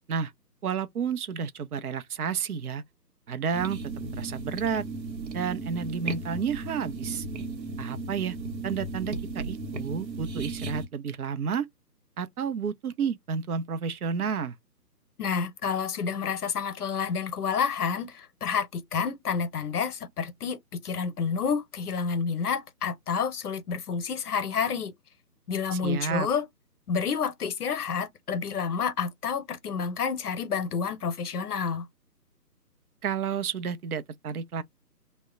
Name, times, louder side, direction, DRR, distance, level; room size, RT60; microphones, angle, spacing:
voice 1, 0.6-2.8 3.3-3.8 4.1-4.8 5.3-7.3 7.8-8.4 8.6-11.7 12.2-14.6 25.7-26.3 33.0-34.6, right 6 dB, 65° right, 0.6 m, -31 dB
sound 1, 3.5-10.9, right 3 dB, 85° right, 1.0 m, -35 dB
voice 2, 15.2-24.9 25.5-26.4 26.9-31.8, left 6 dB, 65° left, 0.7 m, -29 dB
2.1 x 2.0 x 3.6 m
figure-of-eight pair, 155°, 50 cm